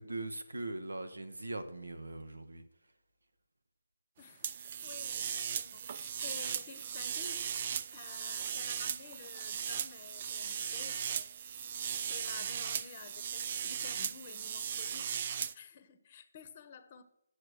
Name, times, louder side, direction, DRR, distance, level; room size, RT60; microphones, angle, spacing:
voice 1, 0.0-2.6, right 2 dB, 80° right, 9 dB, 1.1 m, -41 dB
voice 2, 4.2-11.3 12.1-17.0, left 6 dB, 35° left, 12 dB, 0.9 m, -52 dB
sound 1, 4.4-15.5, right 8 dB, 40° right, 0.4 m, -37 dB
7.5 x 6.5 x 6.3 m, 0.81 s
figure-of-eight pair, 150°, 0 cm